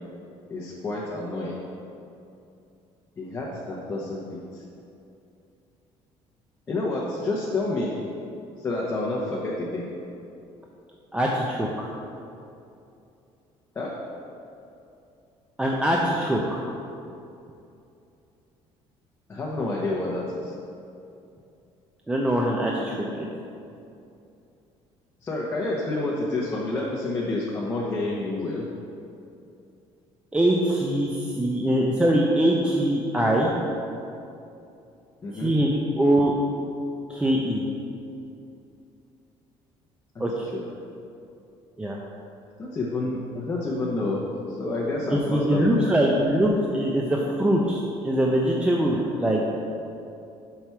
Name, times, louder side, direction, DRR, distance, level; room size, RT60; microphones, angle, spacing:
voice 1, 0.5-1.6 3.2-4.6 6.7-7.9 8.6-9.9 13.7-14.0 19.3-20.5 25.2-28.7 35.2-35.5 40.5-40.6 42.6-45.8, left 2 dB, 20° left, -5 dB, 0.8 m, -29 dB
voice 2, 11.1-11.9 15.6-16.6 22.1-23.3 30.3-33.5 35.3-36.3 37.1-37.6 40.2-40.4 41.8-42.0 45.1-49.4, right 1 dB, 10° right, -2 dB, 0.5 m, -23 dB
5.8 x 4.6 x 5.6 m, 2.7 s
cardioid pair, 150°, 11 cm